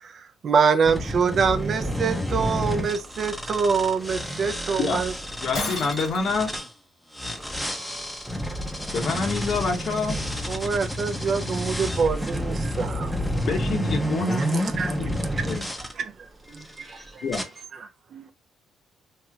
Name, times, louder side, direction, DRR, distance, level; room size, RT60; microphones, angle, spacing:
voice 1, 0.0-5.1 10.5-13.2 14.5-15.5 16.0-16.1 16.8-16.9 18.1-18.3, right 5 dB, 50° right, 0.4 m, -25 dB
sound 1, 0.9-6.7 7.1-15.9 16.6-16.9 17.3-17.4, equal, ahead, 0.6 m, -30 dB
voice 2, 5.4-6.5 8.9-10.2 13.5-15.2 15.4-15.7 17.2-17.4, left 4 dB, 60° left, 0.9 m, -27 dB
Shatter, 5.5-6.4, left 3 dB, 85° left, 1.7 m, -31 dB
voice 3, 12.3-13.0 15.2-15.3 16.5-17.4, right 1 dB, 20° right, 1.0 m, -45 dB
3.1 x 2.7 x 2.3 m
cardioid pair, 110°, 0 cm